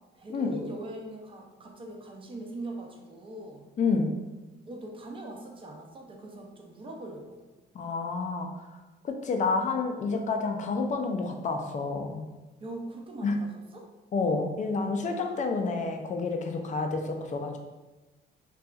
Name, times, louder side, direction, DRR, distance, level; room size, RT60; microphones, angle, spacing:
voice 1, 0.1-3.7 4.7-7.4 12.6-13.9, right 2 dB, 25° right, 1 dB, 0.5 m, -41 dB
voice 2, 3.8-4.1 7.7-8.6 9.0-12.3 13.2-13.4 14.1-17.6, left 4 dB, 40° left, 4 dB, 0.4 m, -29 dB
2.7 x 2.3 x 2.3 m, 1.2 s
cardioid pair, 90°, 20 cm